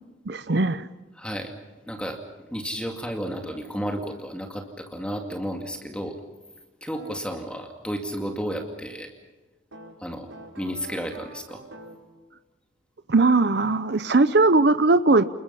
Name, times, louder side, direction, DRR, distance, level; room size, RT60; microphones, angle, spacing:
voice 1, 0.3-0.9 13.1-15.2, right 3 dB, 55° right, 12 dB, 0.7 m, -19 dB
voice 2, 1.2-1.5 1.9-6.2 6.8-9.1 10.0-10.3 10.6-11.6, equal, 5° left, 3 dB, 2.2 m, -32 dB
sound 1, 6.9-7.2 9.7-12.1, right 2 dB, 80° right, 4.9 m, -45 dB
29.0 x 21.5 x 5.7 m, 1.2 s
head